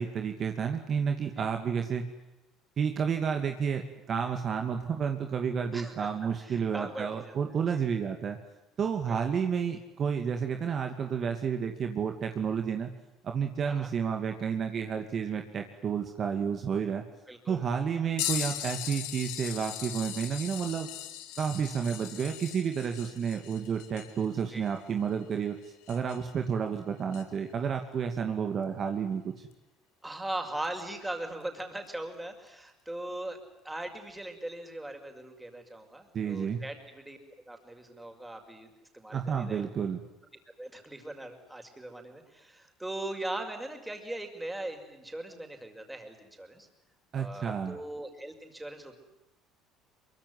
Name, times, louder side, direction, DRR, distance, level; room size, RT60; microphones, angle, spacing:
voice 1, 0.0-2.1 2.8-8.4 8.8-12.9 13.2-17.0 17.5-20.9 21.4-29.5 36.1-36.6 39.1-40.0 47.1-47.8, right 7 dB, 45° right, 5 dB, 2.5 m, -31 dB
voice 2, 5.7-6.1 6.4-7.4 7.7-7.8 9.1-9.2 13.6-13.9 17.3-17.7 24.5-24.7 30.0-33.4 33.6-37.2 37.5-39.7 40.6-46.7 47.1-49.0, right 1 dB, 10° right, 4 dB, 6.0 m, -40 dB
sound 1, 18.2-26.4 27.1-27.2 29.5-29.6 30.6-30.8 31.9-32.0, left 13 dB, 80° left, 2.4 m, -39 dB
24.0 x 23.0 x 9.7 m, 0.95 s
supercardioid pair, 85°, 0 cm